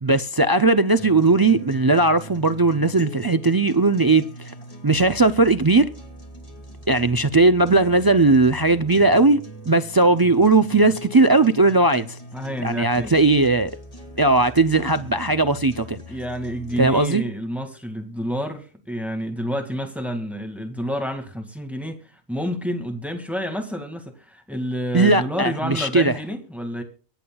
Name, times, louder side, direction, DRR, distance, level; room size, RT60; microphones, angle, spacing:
voice 1, 0.0-4.5 4.8-5.9 6.9-9.4 9.7-12.2 12.6-13.7 14.2-16.0 16.8-17.2 24.9-26.1, right 3 dB, 35° right, 0.3 m, -18 dB
sound 1, 1.0-17.0, left 1 dB, 35° left, 2.5 m, -41 dB
voice 2, 12.3-13.1 16.1-26.8, equal, ahead, 2.0 m, -29 dB
24.0 x 8.6 x 2.3 m
omnidirectional pair, 1.1 m